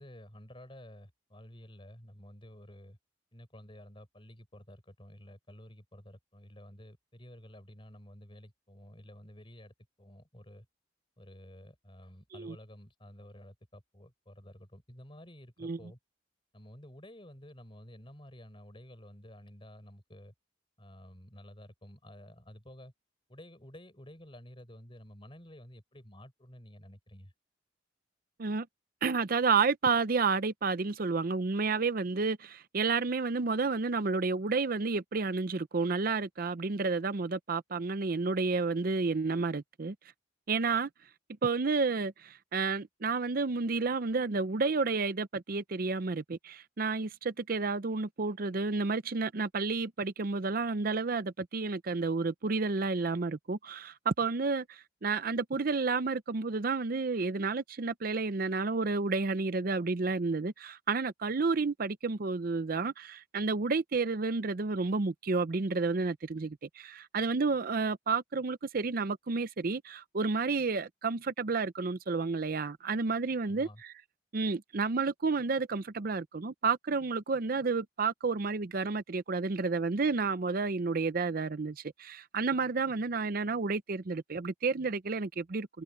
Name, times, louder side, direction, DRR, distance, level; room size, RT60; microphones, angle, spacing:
voice 1, 0.0-3.0 3.3-10.7 11.2-16.0 16.5-20.3 20.8-22.9 23.3-27.3 73.5-73.8, equal, 30° left, 5.3 m, -52 dB
voice 2, 29.0-39.9 40.5-40.9 41.4-73.9 74.3-85.8, right 4 dB, 50° right, 0.6 m, -31 dB
head